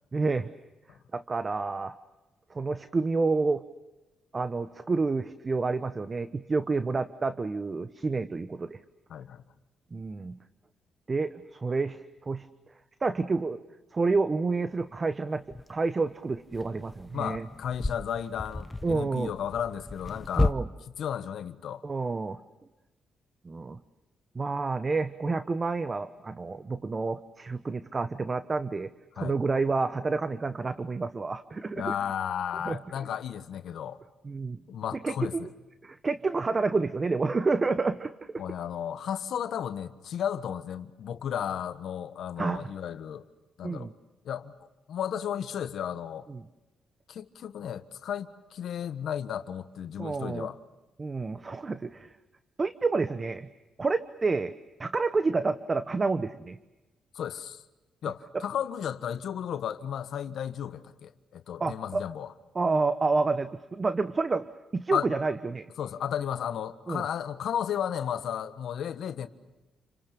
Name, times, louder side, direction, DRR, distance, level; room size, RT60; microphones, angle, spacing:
voice 1, 0.1-0.5 1.1-1.9 2.5-3.6 4.3-8.8 9.9-10.4 11.1-12.5 13.0-13.6 13.9-15.4 15.7-17.5 18.8-19.3 20.4-20.7 21.8-22.4 23.4-23.8 24.3-31.9 32.6-32.8 34.2-34.6 35.0-35.5 35.8-38.4 42.4-42.7 43.6-43.9 46.3-46.4 50.0-50.5 51.0-52.1 52.6-53.5 53.8-54.5 54.8-56.6 58.3-58.4 61.6-62.0 62.5-64.5 64.7-65.7 66.9-67.0, right 3 dB, 35° right, 1.0 m, -29 dB
voice 2, 9.1-9.4 17.1-20.5 21.0-21.8 29.2-29.4 31.7-34.0 34.7-35.5 38.4-43.2 43.6-43.9 44.2-44.5 44.9-46.3 47.1-50.6 57.1-57.6 58.0-62.3 64.9-65.1 65.8-69.3, left 9 dB, 75° left, 1.3 m, -34 dB
sound 1, 14.5-14.6 15.5-15.7 16.4-20.5, left 3 dB, 15° left, 0.9 m, -33 dB
30.0 x 25.5 x 6.8 m
cardioid pair, 80°, 0 cm